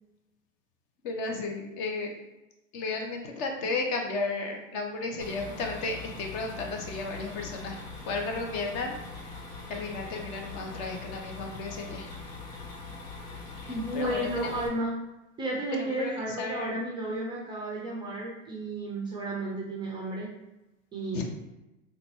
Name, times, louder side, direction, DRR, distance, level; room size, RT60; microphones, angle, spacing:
voice 1, 1.0-2.1 2.7-7.8 8.0-9.0 9.7-12.1 13.6-14.6 15.7-16.7 21.1-21.2, left 3 dB, 45° left, 2 dB, 0.8 m, -34 dB
sound 1, 5.2-14.7, left 3 dB, 80° left, 1.0 m, -42 dB
voice 2, 13.7-14.9 15.4-20.3 20.9-21.2, right 1 dB, 15° right, -3 dB, 0.3 m, -32 dB
3.7 x 2.3 x 3.1 m, 0.97 s
hypercardioid pair, 105°, 38 cm